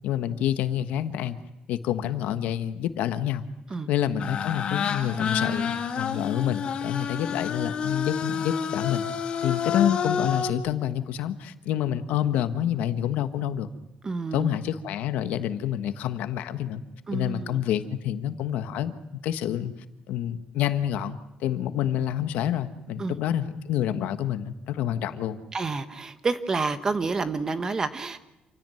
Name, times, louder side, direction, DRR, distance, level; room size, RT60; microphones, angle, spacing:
voice 1, 0.0-1.4 1.7-3.4 3.9-9.0 9.4-13.7 14.3-16.8 17.1-18.9 19.2-19.7 20.1-25.4, left 11 dB, 85° left, 10 dB, 1.5 m, -28 dB
sound 1, 4.2-10.5, left 6 dB, 45° left, 2.3 m, -29 dB
voice 2, 14.0-14.5 17.1-17.6 23.0-23.2 25.5-28.2, right 4 dB, 25° right, 11 dB, 1.2 m, -29 dB
28.0 x 16.5 x 9.3 m, 0.94 s
cardioid pair, 155°, 3 cm